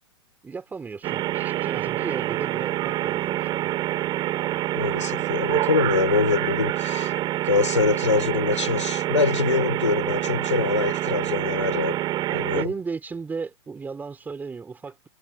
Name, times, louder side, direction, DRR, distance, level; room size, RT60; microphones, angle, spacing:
voice 1, 0.4-3.7 12.3-15.1, right 5 dB, 10° right, 3.9 m, -35 dB
sound 1, 1.0-12.7, right 14 dB, 30° right, 3.9 m, -26 dB
voice 2, 4.7-7.1 7.4-11.9 12.3-12.8, left 4 dB, 90° left, 4.2 m, -24 dB
hypercardioid pair, 115°, 15 cm